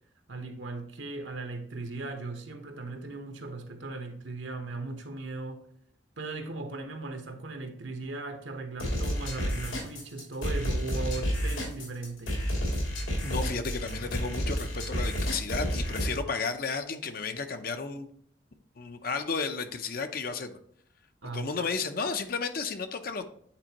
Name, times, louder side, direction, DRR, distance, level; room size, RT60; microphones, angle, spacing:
voice 1, 0.3-5.6 6.2-12.4 21.2-21.5, right 3 dB, 70° right, 1.1 m, -38 dB
sound 1, 8.8-16.2, equal, 85° left, 2.8 m, -30 dB
voice 2, 13.2-18.1 18.8-20.6 21.3-23.2, left 4 dB, 50° left, 0.6 m, -33 dB
8.8 x 4.3 x 2.9 m
head